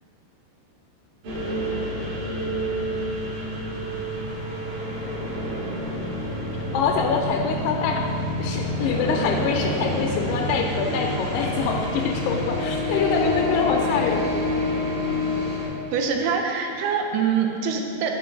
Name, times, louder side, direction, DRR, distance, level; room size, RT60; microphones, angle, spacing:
sound 1, 1.2-15.7, left 1 dB, 60° right, 3.2 m, -27 dB
voice 1, 6.7-8.0 8.4-14.3, left 5 dB, 85° left, 2 dB, 2.5 m, -25 dB
voice 2, 15.9-18.2, right 6 dB, 80° right, 3 dB, 2.6 m, -24 dB
8.4 x 4.3 x 5.7 m, 2.6 s
omnidirectional pair, 4.8 m